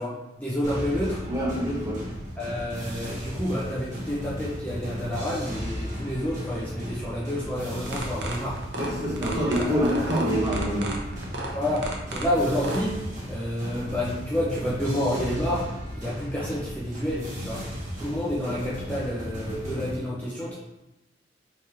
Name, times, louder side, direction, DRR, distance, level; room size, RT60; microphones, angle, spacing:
voice 1, 0.0-1.2 2.4-8.6 9.3-10.1 11.5-13.0 13.3-17.6 18.0-20.6, equal, 10° left, -7 dB, 0.7 m, -29 dB
sound 1, 0.6-19.9, equal, 45° right, 1.3 m, -35 dB
voice 2, 1.3-2.0 8.7-10.9, equal, 20° right, -5 dB, 1.2 m, -26 dB
sound 2, 7.9-12.8, right 2 dB, 65° right, 0.7 m, -34 dB
3.5 x 3.2 x 4.5 m, 0.96 s
head